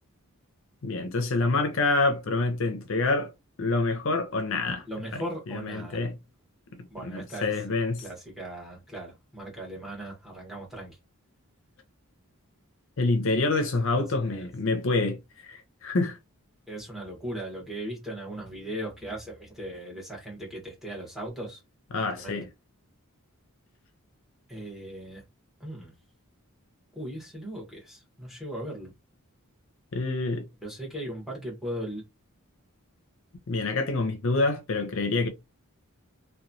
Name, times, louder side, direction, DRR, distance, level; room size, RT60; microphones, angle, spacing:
voice 1, 0.8-3.3 3.6-4.8 5.1-5.2 5.5-6.1 7.0-8.0 13.0-16.2 21.9-22.5 29.9-30.5 33.5-35.3, left 3 dB, 60° left, 0.6 m, -27 dB
voice 2, 4.9-6.0 6.9-7.6 8.0-11.0 14.2-14.5 16.7-21.6 22.1-22.4 24.5-25.2 25.6-25.9 26.9-28.9 30.6-32.0, right 1 dB, ahead, 1.1 m, -38 dB
2.9 x 2.2 x 2.6 m
head